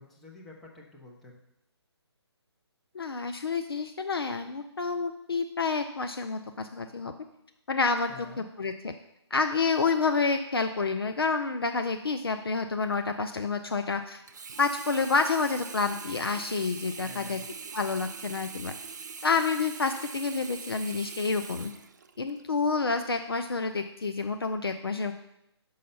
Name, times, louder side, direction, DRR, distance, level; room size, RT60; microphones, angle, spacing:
voice 1, 0.0-1.4 8.1-8.5 17.0-17.5, left 2 dB, ahead, -4 dB, 0.7 m, -49 dB
voice 2, 2.9-7.1 7.7-8.1 8.4-8.9 9.3-14.2 14.6-17.4 17.7-18.7 19.2-21.7 22.2-25.1, left 4 dB, 60° left, 7 dB, 0.5 m, -29 dB
Sink (filling or washing), 14.3-22.5 23.1-23.2, right 5 dB, 40° right, 0.4 m, -42 dB
5.6 x 5.2 x 6.5 m, 0.82 s
figure-of-eight pair, 145°, 14 cm